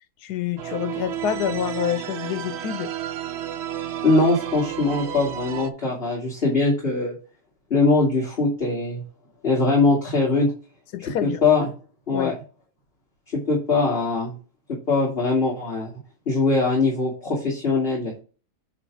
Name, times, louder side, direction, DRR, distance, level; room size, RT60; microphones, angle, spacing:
voice 1, 0.2-2.9 10.9-11.4 12.1-12.3, left 10 dB, 90° left, 1.3 m, -27 dB
sound 1, 0.6-5.7, right 11 dB, 60° right, 0.7 m, -32 dB
voice 2, 4.0-7.1 7.7-9.0 9.4-10.5 11.2-11.7 12.1-12.3 13.3-14.3 14.9-15.9 16.3-18.1, left 3 dB, 35° left, 2.7 m, -21 dB
9.3 x 3.4 x 4.8 m
omnidirectional pair, 1.7 m